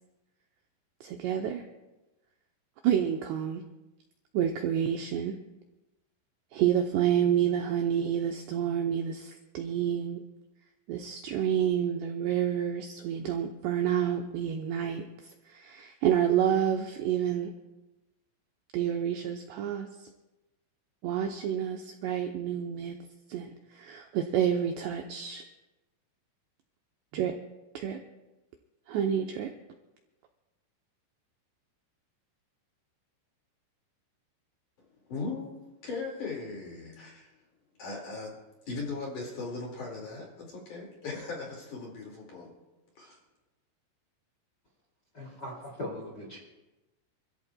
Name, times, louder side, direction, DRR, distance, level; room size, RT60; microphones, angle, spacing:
voice 1, 1.0-1.6 2.8-3.6 4.3-5.4 6.5-10.2 10.9-15.0 15.5-17.5 18.7-19.9 21.0-23.0 23.3-25.4 27.1-27.3 27.7-28.0 28.9-29.5, right 9 dB, 80° right, 3 dB, 2.5 m, -29 dB
voice 2, 35.1-35.6 35.8-37.3 37.8-38.4 38.7-42.5 43.0-43.2, left 3 dB, 50° left, -2 dB, 2.9 m, -38 dB
voice 3, 45.1-46.4, left 1 dB, 30° left, -2 dB, 2.0 m, -39 dB
28.5 x 13.5 x 2.3 m, 1.0 s
omnidirectional pair, 5.9 m